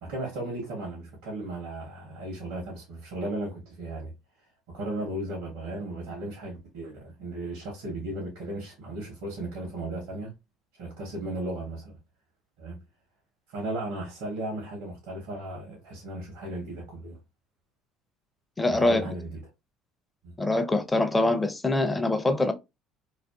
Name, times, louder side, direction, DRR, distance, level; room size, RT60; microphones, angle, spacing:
voice 1, 0.0-4.1 4.7-10.3 10.8-12.0 12.6-12.8 13.5-17.2 18.7-19.4 20.2-20.3, right 1 dB, 75° right, 0.8 m, -35 dB
voice 2, 18.6-19.0 20.4-22.5, left 2 dB, 15° left, 0.5 m, -24 dB
2.5 x 2.4 x 2.2 m
hypercardioid pair, 65°, 0 cm